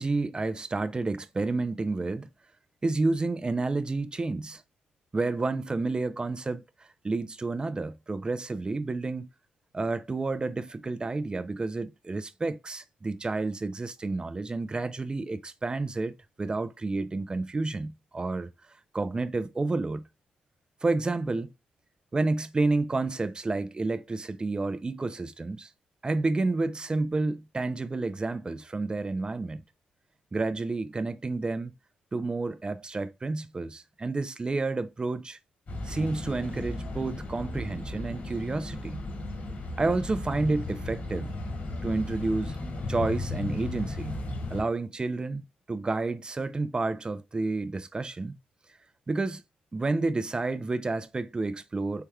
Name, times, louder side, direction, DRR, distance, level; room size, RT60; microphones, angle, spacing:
voice 1, 0.0-2.3 2.8-4.6 5.1-9.3 9.7-18.5 18.9-20.0 20.8-21.5 22.1-25.7 26.0-29.6 30.3-31.7 32.1-35.4 35.8-39.0 39.8-41.3 41.8-42.6 42.9-44.2 44.5-48.3 49.1-49.4 49.7-52.1, right 3 dB, 25° right, 0.5 m, -30 dB
sound 1, 35.7-44.6, left 2 dB, 60° left, 2.0 m, -35 dB
4.4 x 3.5 x 2.3 m
supercardioid pair, 55°, 3 cm